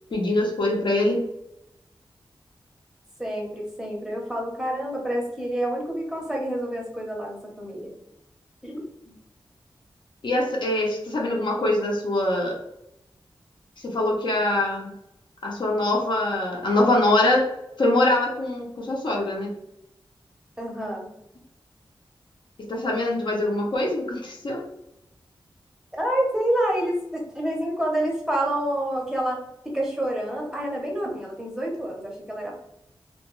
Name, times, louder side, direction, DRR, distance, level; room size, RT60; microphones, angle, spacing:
voice 1, 0.1-1.2 10.2-12.6 13.8-14.9 15.4-17.5 17.8-19.5 22.7-24.6, left 1 dB, 60° left, -1 dB, 0.6 m, -23 dB
voice 2, 3.2-7.9 8.6-9.1 20.6-21.1 25.9-29.4 29.7-32.5, right 1 dB, 5° right, -2 dB, 0.6 m, -28 dB
2.3 x 2.2 x 3.0 m, 0.82 s
wide cardioid pair, 115°, 9 cm